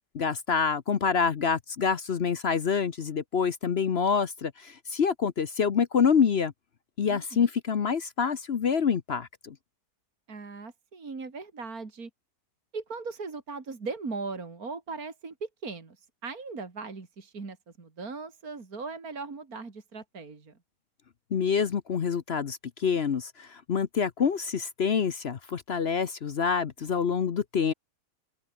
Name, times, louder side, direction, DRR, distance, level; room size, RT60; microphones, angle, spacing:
voice 1, 0.1-6.5 7.0-9.5 21.3-27.7, left 6 dB, 45° left, 1.0 m, -26 dB
voice 2, 7.1-7.4 10.3-12.1 12.7-20.5, right 4 dB, 60° right, 3.3 m, -39 dB
open air
omnidirectional pair, 1.7 m